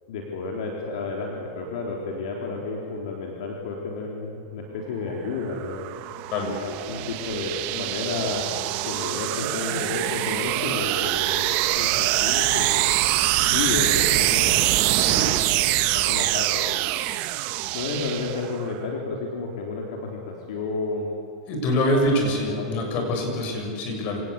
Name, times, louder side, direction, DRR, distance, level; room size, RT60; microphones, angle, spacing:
voice 1, 0.1-5.8 6.6-8.5 8.9-12.9 13.4-14.6 15.4-16.9 17.7-21.1 21.8-22.0 22.6-23.2, left 4 dB, 70° left, -1 dB, 3.9 m, -31 dB
sound 1, 5.2-18.7, right 16 dB, 50° right, 1.2 m, -24 dB
voice 2, 14.9-15.2 21.5-24.2, left 1 dB, 45° left, 3 dB, 6.8 m, -25 dB
26.5 x 18.5 x 8.4 m, 2.4 s
supercardioid pair, 130°, 3 cm